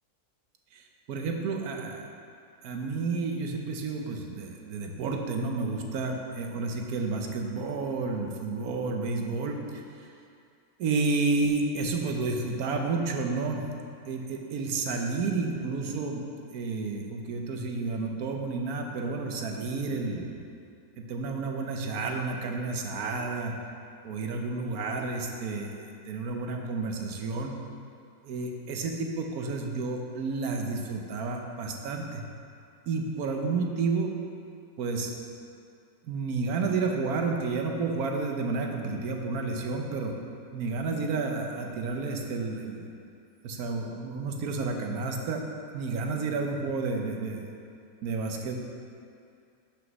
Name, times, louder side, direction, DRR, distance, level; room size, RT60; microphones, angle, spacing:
voice 1, 0.7-2.1 2.6-10.1 10.8-13.7 14.1-16.3 16.5-20.5 21.1-23.5 24.0-27.6 28.2-32.2 32.9-34.1 34.8-35.1 36.1-40.1 40.5-42.9 43.4-45.4 45.7-47.5 48.0-48.6, right 3 dB, 75° right, 2 dB, 1.2 m, -31 dB
6.3 x 5.1 x 6.0 m, 2.4 s
omnidirectional pair, 1.6 m